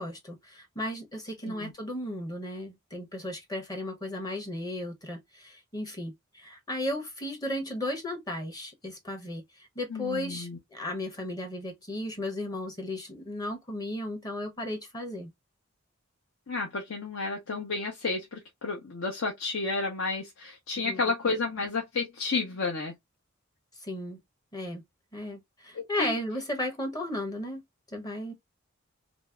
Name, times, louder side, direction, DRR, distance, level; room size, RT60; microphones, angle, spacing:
voice 1, 0.0-15.3 20.8-21.1 23.8-24.2 24.5-24.8 25.1-27.6 27.9-28.3, left 1 dB, 20° left, 0.8 m, -35 dB
voice 2, 9.9-10.6 16.5-22.9 25.7-26.1, left 3 dB, 75° left, 0.8 m, -31 dB
3.0 x 2.7 x 2.3 m
head